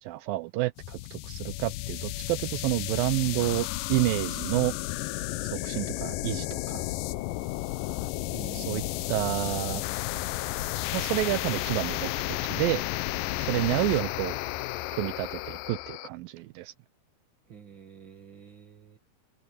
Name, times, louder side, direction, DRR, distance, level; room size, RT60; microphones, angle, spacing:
voice 1, 0.0-4.7 5.5-6.8 8.5-8.8 9.1-9.8 10.9-12.8 13.4-14.4 14.9-16.7, right 18 dB, 85° right, 2.1 m, -29 dB
sound 1, 0.8-16.1, left 17 dB, 85° left, 2.0 m, -33 dB
voice 2, 8.3-9.1 13.5-13.7 17.5-19.0, right 7 dB, 50° right, 1.5 m, -47 dB
omnidirectional pair, 4.7 m